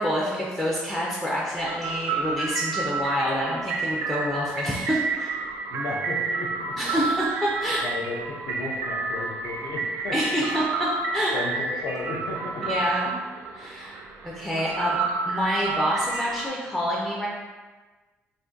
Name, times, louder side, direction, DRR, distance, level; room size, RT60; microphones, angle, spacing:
voice 1, 0.0-5.4 6.8-7.8 10.1-10.6 11.1-11.3 12.6-13.1 13.5-17.3, equal, 10° left, -5 dB, 0.3 m, -27 dB
sound 1, 1.5-16.5, right 4 dB, 60° right, 0.4 m, -30 dB
voice 2, 5.7-6.8 7.8-10.2 11.3-12.6, left 3 dB, 75° left, 0 dB, 0.5 m, -34 dB
2.5 x 2.5 x 3.7 m, 1.3 s
cardioid pair, 175°, 5 cm